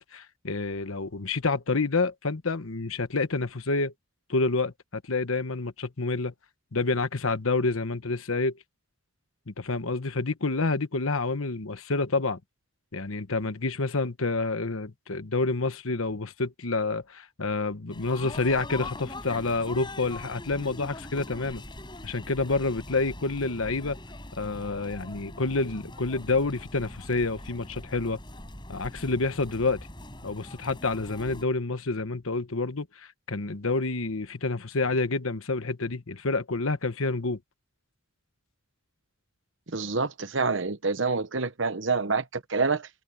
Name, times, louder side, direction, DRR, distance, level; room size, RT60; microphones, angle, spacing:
voice 1, 0.0-3.9 4.3-6.3 6.7-8.5 9.5-12.4 12.9-21.6 22.0-24.0 24.4-28.2 28.7-29.8 30.2-37.4, left 3 dB, 75° left, 1.2 m, -28 dB
sound 1, 17.9-31.4, left 1 dB, 20° left, 7.8 m, -42 dB
voice 2, 39.7-42.9, right 4 dB, 60° right, 1.1 m, -27 dB
head